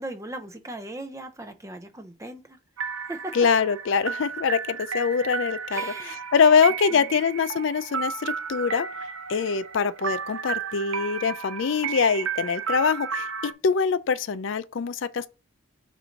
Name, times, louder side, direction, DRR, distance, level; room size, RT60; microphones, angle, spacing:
voice 1, 0.0-2.6 3.1-3.3 5.7-6.2 6.9-7.1, right 1 dB, 15° right, 0.5 m, -38 dB
sound 1, 2.8-13.5, right 6 dB, 80° right, 0.6 m, -33 dB
voice 2, 3.3-8.9 9.3-15.3, left 6 dB, 65° left, 0.4 m, -24 dB
7.3 x 2.6 x 5.1 m
head